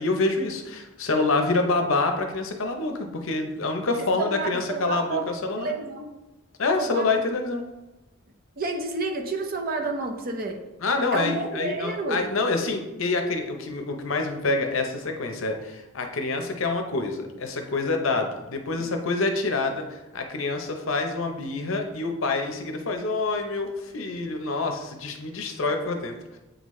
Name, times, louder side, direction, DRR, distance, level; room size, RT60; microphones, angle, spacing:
voice 1, 0.0-5.7 6.6-7.6 10.8-26.4, left 3 dB, 65° left, 4 dB, 0.7 m, -27 dB
voice 2, 4.0-5.3 5.5-6.1 6.8-7.1 8.6-10.6 11.1-12.3, right 3 dB, 45° right, 4 dB, 0.7 m, -30 dB
8.0 x 3.9 x 3.1 m, 1.0 s
head